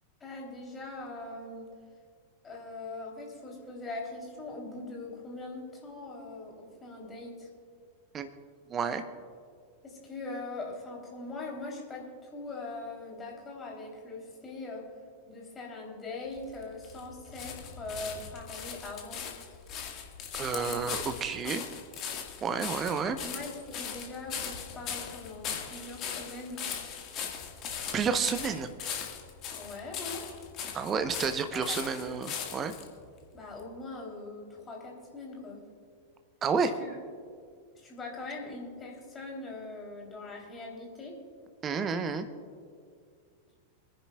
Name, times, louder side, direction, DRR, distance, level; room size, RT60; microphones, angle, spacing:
voice 1, 0.2-1.7 2.4-7.5 9.8-14.8 15.3-19.2 20.5-20.9 21.4-21.6 23.1-26.6 29.5-30.3 31.5-32.2 33.3-35.6 36.8-36.9 37.7-41.2, left 2 dB, 20° left, -1 dB, 3.3 m, -41 dB
voice 2, 8.7-9.0 20.4-21.6 22.4-23.2 27.9-28.7 30.7-32.7 36.4-36.7 41.6-42.2, right 5 dB, 25° right, 9 dB, 0.9 m, -30 dB
sound 1, 16.3-32.9 33.6-33.7, left 7 dB, 35° left, 1.8 m, -39 dB
25.5 x 10.5 x 2.4 m, 2.1 s
figure-of-eight pair, 90°, 0 cm